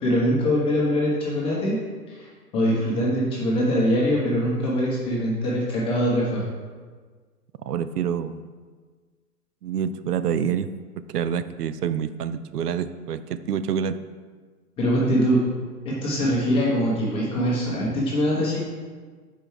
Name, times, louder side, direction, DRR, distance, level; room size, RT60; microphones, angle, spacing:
voice 1, 0.0-1.8 2.1-2.3 2.5-6.4 14.8-15.4 15.8-18.6, equal, 10° left, -6 dB, 0.8 m, -23 dB
voice 2, 7.6-8.4 9.6-10.7 11.1-14.0, right 8 dB, 75° right, 13 dB, 0.5 m, -27 dB
5.0 x 4.6 x 4.6 m, 1.5 s
hypercardioid pair, 135°, 48 cm